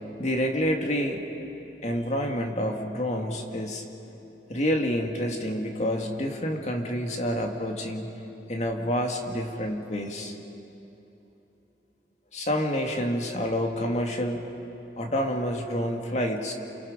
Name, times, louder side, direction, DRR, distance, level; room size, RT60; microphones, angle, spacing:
voice 1, 0.2-1.2 1.8-3.8 4.5-8.1 8.5-10.3 12.3-14.4 15.0-16.5, equal, 40° left, 2 dB, 2.2 m, -28 dB
29.0 x 28.5 x 5.2 m, 3.0 s
head